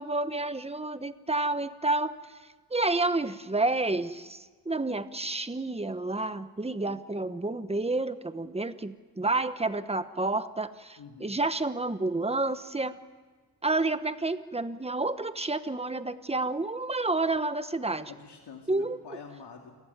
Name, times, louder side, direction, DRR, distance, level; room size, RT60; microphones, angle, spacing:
voice 1, 0.0-2.2 2.7-13.0 13.6-18.1 18.7-19.0, right 2 dB, 15° right, 11 dB, 1.1 m, -30 dB
voice 2, 11.0-11.4 18.1-19.8, left 5 dB, 85° left, 1 dB, 2.6 m, -46 dB
28.5 x 19.5 x 9.5 m, 1.4 s
wide cardioid pair, 120°, 40 cm